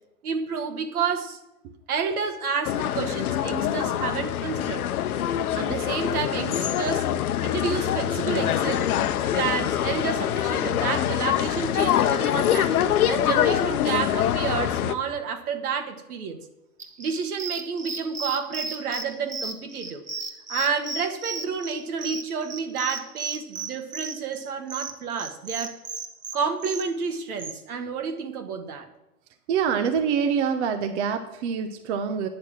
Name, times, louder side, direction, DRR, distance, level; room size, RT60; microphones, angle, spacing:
voice 1, 0.2-1.4 1.9-4.8 5.5-7.1 7.4-8.8 9.3-16.4 17.0-20.0 20.5-25.7 26.3-28.9, right 5 dB, 75° right, 6 dB, 1.8 m, -30 dB
sound 1, 2.6-14.9, left 11 dB, 75° left, 0.9 m, -24 dB
sound 2, 16.8-27.5, right 4 dB, 15° right, 1.2 m, -34 dB
voice 2, 29.5-32.3, right 7 dB, 50° right, 7 dB, 1.1 m, -25 dB
9.7 x 6.9 x 7.3 m, 0.92 s
hypercardioid pair, 120°, 44 cm